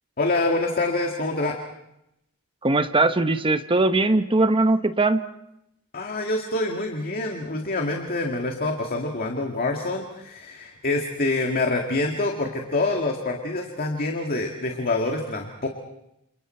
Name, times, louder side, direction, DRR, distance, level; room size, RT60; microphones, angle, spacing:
voice 1, 0.2-1.6 5.9-15.7, left 2 dB, 40° left, 2 dB, 2.1 m, -26 dB
voice 2, 2.6-5.2, right 2 dB, 25° right, 9 dB, 1.0 m, -20 dB
29.0 x 28.0 x 4.5 m, 0.82 s
head